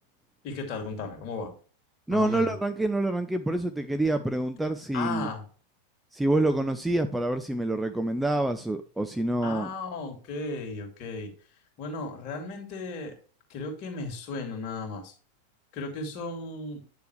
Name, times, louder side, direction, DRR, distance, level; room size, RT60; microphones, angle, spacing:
voice 1, 0.4-1.5 2.1-2.5 4.9-5.4 9.4-11.3 11.8-13.1 13.5-15.1 15.7-16.8, left 3 dB, 40° left, 2 dB, 2.6 m, -35 dB
voice 2, 2.1-5.3 6.1-9.7, right 1 dB, 5° right, 8 dB, 0.6 m, -27 dB
9.5 x 6.9 x 3.2 m, 0.39 s
figure-of-eight pair, 90°, 0 cm